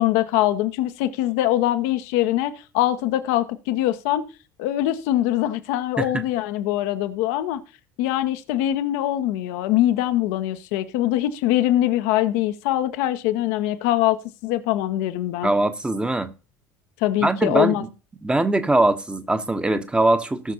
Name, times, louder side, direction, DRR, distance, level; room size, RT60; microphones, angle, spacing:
voice 1, 0.0-4.2 4.6-7.6 8.0-15.5 17.0-17.8, left 13 dB, 55° left, 0.7 m, -23 dB
voice 2, 15.4-16.3 17.2-17.9 18.2-20.5, right 2 dB, 10° right, 1.0 m, -21 dB
18.0 x 6.2 x 2.9 m
figure-of-eight pair, 65°, 9 cm